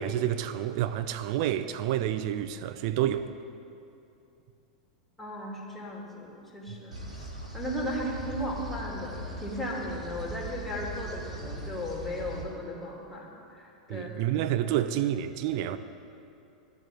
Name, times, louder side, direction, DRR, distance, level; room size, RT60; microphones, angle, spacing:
voice 1, 0.0-3.3 13.9-15.8, right 11 dB, 45° right, 0.6 m, -29 dB
voice 2, 5.2-14.1, equal, 5° left, 3.0 m, -36 dB
sound 1, 6.9-12.4, right 1 dB, 85° right, 2.1 m, -40 dB
11.5 x 7.6 x 10.0 m
figure-of-eight pair, 90°, 4 cm